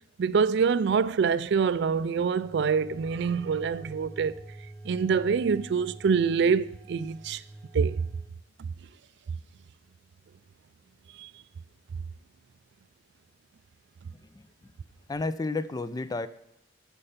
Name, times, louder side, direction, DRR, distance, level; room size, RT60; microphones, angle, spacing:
voice 1, 0.2-4.3 4.8-7.4 7.7-8.0 11.2-11.3, right 6 dB, 60° right, 0.3 m, -25 dB
sound 1, 2.4-8.3, right 2 dB, 15° right, 0.8 m, -46 dB
voice 2, 15.1-16.3, left 3 dB, 20° left, 0.4 m, -31 dB
13.0 x 5.4 x 5.7 m
head